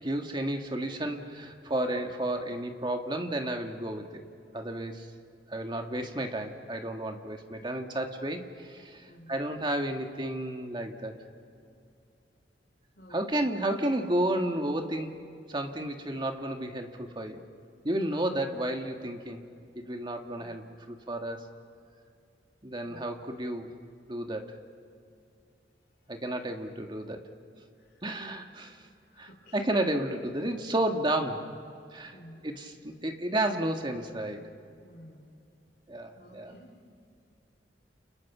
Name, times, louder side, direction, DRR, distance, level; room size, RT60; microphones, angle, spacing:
voice 1, 0.0-4.2 4.5-5.1 5.5-11.1 13.1-15.2 15.5-17.4 17.8-19.4 19.7-21.5 22.6-23.7 24.1-24.6 26.1-27.3 28.0-28.9 29.2-31.5 31.9-32.1 32.4-34.5 35.9-36.5, right 1 dB, 25° right, 4 dB, 1.9 m, -32 dB
voice 2, 9.0-9.4 12.9-13.2 20.4-20.6 22.8-23.0 27.7-28.2 29.0-29.5 32.1-32.4 34.8-35.3 36.1-36.7, equal, 60° left, -2 dB, 4.0 m, -53 dB
30.0 x 29.5 x 6.1 m, 2.4 s
head